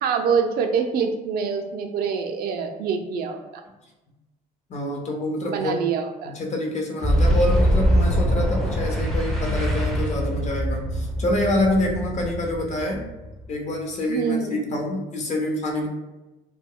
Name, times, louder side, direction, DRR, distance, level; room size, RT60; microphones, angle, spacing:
voice 1, 0.0-3.6 5.5-6.3 14.1-14.6, right 6 dB, 65° right, 5 dB, 0.4 m, -25 dB
voice 2, 4.7-5.8 6.2-13.0 13.5-15.9, left 1 dB, 45° left, 1 dB, 0.6 m, -26 dB
Boom, 7.0-13.6, equal, ahead, 0.4 m, -23 dB
2.2 x 2.1 x 3.6 m, 1.0 s
cardioid pair, 110°, 17 cm